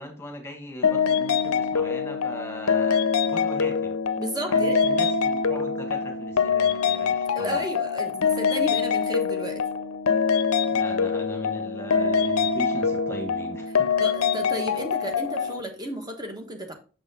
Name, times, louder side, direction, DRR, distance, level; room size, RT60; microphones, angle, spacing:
voice 1, 0.0-3.0 3.3-4.0 4.5-7.6 10.6-14.0, left 1 dB, 10° left, 3 dB, 1.5 m, -39 dB
sound 1, 0.8-15.6, left 5 dB, 80° left, 0.6 m, -24 dB
voice 2, 4.2-4.8 7.3-9.6 14.0-16.7, right 1 dB, 20° right, 4 dB, 1.2 m, -33 dB
6.9 x 5.4 x 3.5 m, 0.37 s
head